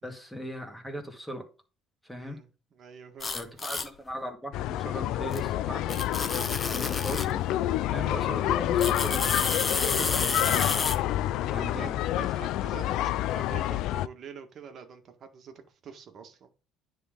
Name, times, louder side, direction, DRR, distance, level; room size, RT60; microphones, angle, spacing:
voice 1, 0.0-1.5 2.0-2.4 3.3-3.8 4.1-6.0 6.7-7.5 7.9-9.5 9.8-10.9 11.5-12.0, equal, ahead, 3 dB, 2.2 m, -38 dB
voice 2, 2.2-3.7 11.4-16.5, right 6 dB, 50° right, 6 dB, 1.8 m, -46 dB
sound 1, 3.2-3.9 5.3-5.4 5.9-7.3 8.8-11.0, left 4 dB, 25° left, 1.1 m, -30 dB
sound 2, 4.5-14.1, left 13 dB, 75° left, 0.4 m, -28 dB
9.9 x 3.9 x 5.2 m, 0.34 s
cardioid pair, 115°, 0 cm